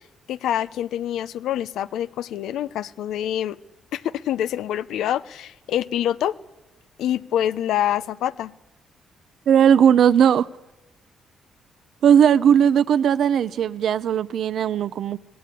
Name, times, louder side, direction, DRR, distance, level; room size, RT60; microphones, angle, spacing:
voice 1, 0.3-3.6 3.9-6.4 7.0-8.5, left 11 dB, 80° left, 0.7 m, -26 dB
voice 2, 9.5-10.5 12.0-15.2, right 8 dB, 65° right, 0.8 m, -17 dB
25.0 x 17.0 x 8.5 m
cardioid pair, 90°, 0 cm